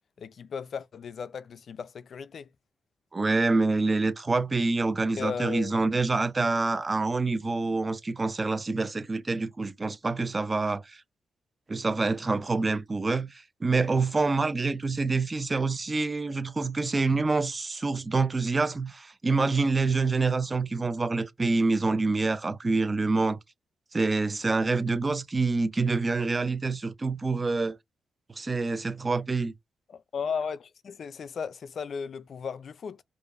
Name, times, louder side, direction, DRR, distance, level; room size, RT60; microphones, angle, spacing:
voice 1, 0.2-2.5 5.2-5.8 29.9-33.0, left 6 dB, 55° left, 0.3 m, -35 dB
voice 2, 3.1-11.0 11.7-23.4 23.9-27.8 28.3-29.5, right 3 dB, 25° right, 0.5 m, -26 dB
4.9 x 2.5 x 2.4 m
cardioid pair, 130°, 0 cm